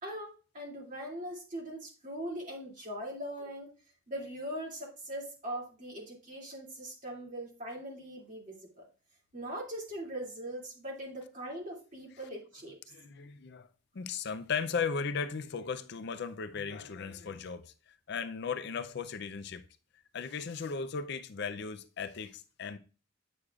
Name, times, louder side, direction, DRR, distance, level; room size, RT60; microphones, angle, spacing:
voice 1, 0.0-3.7 4.1-8.9 9.3-12.8, right 1 dB, 40° right, 2.5 m, -41 dB
voice 2, 12.9-13.7 13.9-17.7 18.1-19.6 20.1-22.8, left 5 dB, 55° left, 0.4 m, -36 dB
8.6 x 6.4 x 2.4 m
head